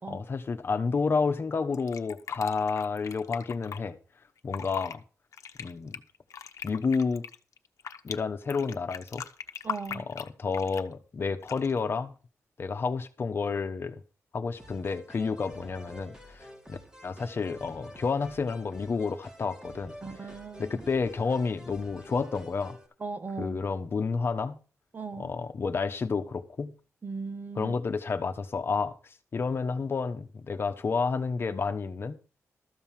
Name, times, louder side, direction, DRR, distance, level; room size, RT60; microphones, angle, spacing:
voice 1, 0.0-4.0 4.4-5.0 5.6-6.0 6.6-7.2 8.0-9.2 9.9-12.1 12.6-14.0 14.3-16.8 17.0-20.0 20.2-20.3 20.6-22.8 23.4-24.6 25.2-26.7 27.5-32.1, left 4 dB, 50° left, 1.2 m, -30 dB
Fill (with liquid), 1.7-3.8 4.4-5.0 5.3-8.2 8.5-10.9 11.4-11.8, left 7 dB, 85° left, 1.0 m, -39 dB
voice 2, 9.6-10.0 20.0-20.8 23.0-23.6 24.9-25.3 27.0-27.8, right 4 dB, 35° right, 1.2 m, -38 dB
sound 1, 14.6-22.9, equal, 15° right, 3.2 m, -49 dB
13.5 x 5.4 x 7.5 m
wide cardioid pair, 125°, 5 cm